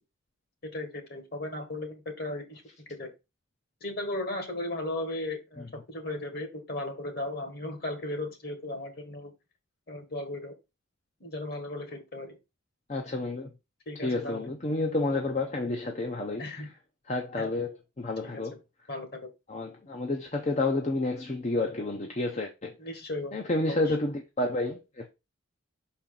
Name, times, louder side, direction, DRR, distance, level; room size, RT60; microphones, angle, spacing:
voice 1, 0.6-2.6 2.9-3.1 3.8-9.3 9.9-10.5 11.2-12.4 13.8-14.5 16.4-16.7 17.4-17.6 18.2-18.5 18.9-19.2 22.8-23.9, left 1 dB, 50° left, 1.6 m, -36 dB
voice 2, 12.9-13.5 14.0-16.6 17.1-18.6 19.5-22.7 23.3-25.1, left 2 dB, 35° left, 0.7 m, -30 dB
6.0 x 4.4 x 3.8 m
head